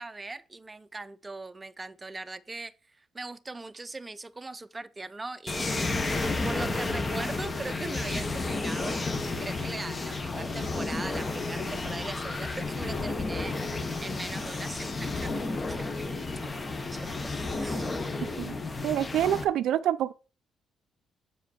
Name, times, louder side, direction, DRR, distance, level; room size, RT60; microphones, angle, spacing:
voice 1, 0.0-6.1 6.4-9.0 9.4-16.1 16.4-17.3 17.6-18.0, right 3 dB, 20° right, 0.6 m, -40 dB
sound 1, 5.5-19.4, left 3 dB, 30° left, 1.2 m, -32 dB
voice 2, 18.8-20.1, right 11 dB, 80° right, 0.3 m, -26 dB
7.7 x 5.0 x 4.5 m
cardioid pair, 90°, 0 cm